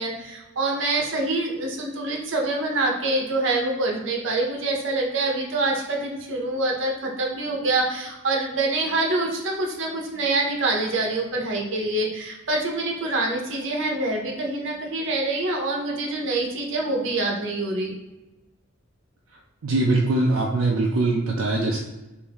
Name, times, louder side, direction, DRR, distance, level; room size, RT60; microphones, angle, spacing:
voice 1, 0.0-18.0, right 2 dB, 65° right, 0 dB, 0.8 m, -25 dB
voice 2, 19.6-21.8, right 2 dB, 85° right, -1 dB, 0.4 m, -22 dB
3.4 x 2.7 x 3.5 m, 1.0 s
head